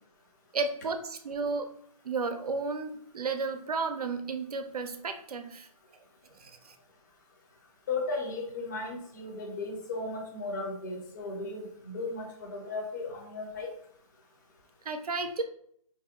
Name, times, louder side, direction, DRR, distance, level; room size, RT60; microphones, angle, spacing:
voice 1, 0.5-1.7 2.0-5.7 6.3-6.8 14.9-15.4, right 4 dB, 80° right, 7 dB, 0.5 m, -33 dB
voice 2, 7.9-13.7, left 3 dB, 30° left, -1 dB, 0.5 m, -36 dB
2.6 x 2.0 x 3.5 m, 0.65 s
hypercardioid pair, 160°, 19 cm